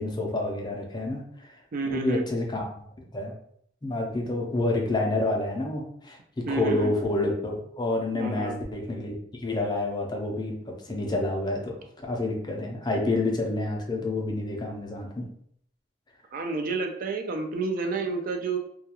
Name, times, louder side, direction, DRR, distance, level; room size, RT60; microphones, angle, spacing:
voice 1, 0.0-1.6 1.8-2.8 3.1-3.3 3.8-11.7 12.0-15.3, left 2 dB, 25° left, 1 dB, 0.4 m, -28 dB
voice 2, 1.7-2.3 6.5-6.9 8.2-8.6 16.3-18.6, right 4 dB, 45° right, 4 dB, 0.3 m, -30 dB
2.3 x 2.3 x 2.8 m, 0.66 s
head